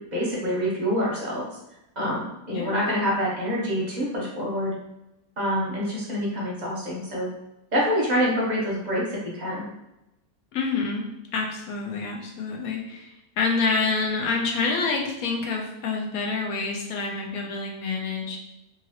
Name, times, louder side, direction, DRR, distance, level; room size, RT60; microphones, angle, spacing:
voice 1, 0.0-1.6 2.0-4.7 5.4-7.3 7.7-9.7, equal, 45° right, -4 dB, 0.6 m, -26 dB
voice 2, 10.5-18.4, left 4 dB, 80° left, 1 dB, 1.1 m, -27 dB
2.9 x 2.7 x 2.8 m, 0.90 s
omnidirectional pair, 1.5 m